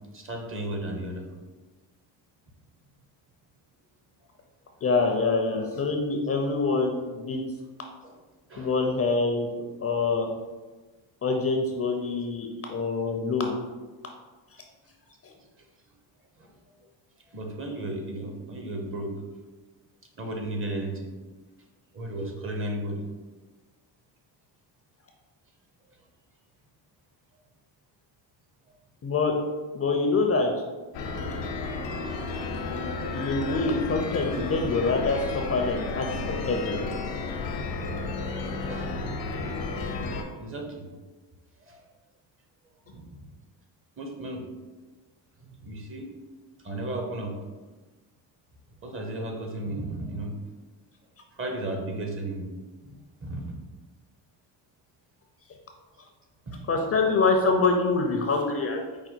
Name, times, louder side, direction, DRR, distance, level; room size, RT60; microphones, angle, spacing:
voice 1, 0.1-1.3 8.0-8.2 8.5-8.7 16.4-16.5 17.3-19.1 20.2-21.1 21.9-23.0 38.6-39.0 40.4-40.9 41.6-41.8 42.9-43.2 44.0-44.5 45.5-46.1 46.6-47.3 48.8-50.3 51.4-52.5 52.8-52.9 53.2-53.4 56.5-56.6, right 1 dB, 30° right, 2 dB, 0.8 m, -34 dB
voice 2, 4.8-7.4 8.6-9.5 9.8-10.3 11.2-13.6 29.0-29.4 29.7-30.5 33.0-36.9 56.7-58.8, left 3 dB, 35° left, 2 dB, 0.5 m, -25 dB
sound 1, 30.9-40.2, left 3 dB, 75° left, 0.8 m, -32 dB
5.1 x 2.2 x 4.4 m, 1.3 s
cardioid pair, 105°, 44 cm